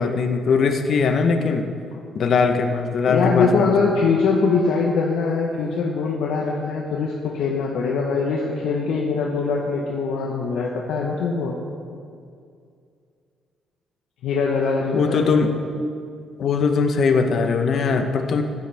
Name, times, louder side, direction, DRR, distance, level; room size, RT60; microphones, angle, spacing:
voice 1, 0.0-1.6 2.1-3.9 14.9-15.5 16.4-18.4, left 5 dB, 55° left, 6 dB, 0.9 m, -20 dB
voice 2, 3.1-11.6 14.2-15.3, left 4 dB, 85° left, -2 dB, 1.0 m, -22 dB
14.0 x 9.5 x 3.5 m, 2.3 s
cardioid pair, 125°, 0 cm